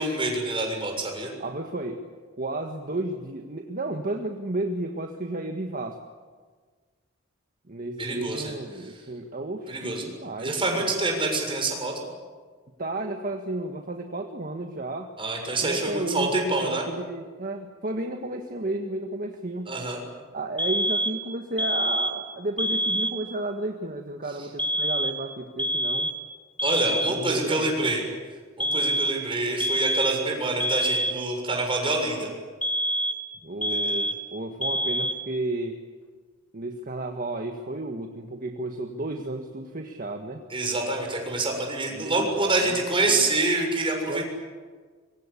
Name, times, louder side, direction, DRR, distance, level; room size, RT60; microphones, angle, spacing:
voice 1, 0.0-1.3 8.0-8.5 9.7-10.0 10.4-12.1 15.2-16.8 19.7-20.0 26.6-28.0 28.6-32.3 33.7-33.9 40.5-44.2, right 2 dB, 25° right, 2 dB, 7.0 m, -26 dB
voice 2, 1.4-2.0 2.4-6.0 7.7-10.9 12.8-15.1 15.6-19.7 20.3-26.1 27.1-28.0 33.4-35.8 36.5-40.4 41.9-43.3 44.1-44.2, right 2 dB, 45° right, 4 dB, 1.7 m, -32 dB
Smoke detector alarm close perspective, 20.6-21.2 21.6-22.3 22.6-23.2 24.6-25.3 25.6-26.3 26.6-27.3 28.6-29.3 29.6-30.3 30.6-31.3 32.6-33.3 33.6-34.3 34.6-35.3, right 1 dB, 5° left, 1.8 m, -26 dB
25.5 x 24.0 x 8.5 m, 1.5 s
head